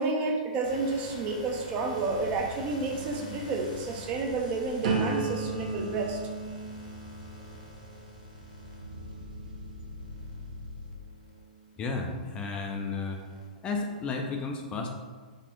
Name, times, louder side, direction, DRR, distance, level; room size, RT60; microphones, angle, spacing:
voice 1, 0.0-6.2, right 3 dB, 30° right, 2 dB, 0.6 m, -30 dB
sound 1, 0.6-9.3 10.0-10.5 11.0-11.3 11.7-13.5, left 3 dB, 80° left, 1.3 m, -47 dB
sound 2, 2.0-10.9, left 1 dB, 75° right, 0.6 m, -46 dB
sound 3, 4.8-10.7 11.2-11.6, right 5 dB, 60° right, 1.0 m, -35 dB
voice 2, 11.8-13.2 13.6-14.9, left 4 dB, 20° left, 2 dB, 0.4 m, -32 dB
4.3 x 2.4 x 4.4 m, 1.4 s
hypercardioid pair, 135°, 5 cm